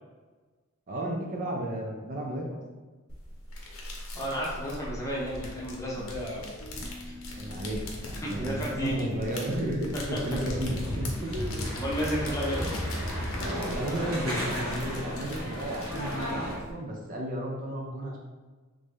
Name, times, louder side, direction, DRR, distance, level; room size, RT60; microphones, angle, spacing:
voice 1, 0.9-2.6 7.3-7.8 8.2-8.5 8.8-11.3 13.7-18.2, right 1 dB, 40° right, -1 dB, 0.5 m, -33 dB
sound 1, 3.1-16.7, left 1 dB, 80° left, 0.7 m, -41 dB
voice 2, 4.1-6.4 8.2-9.0 11.7-12.6, equal, 15° left, -5 dB, 0.8 m, -32 dB
sound 2, 5.1-8.1 8.5-11.5, left 4 dB, 40° left, 0.5 m, -46 dB
sound 3, 10.1-16.5, equal, 85° right, 1.3 m, -33 dB
3.2 x 2.5 x 3.5 m, 1.3 s
head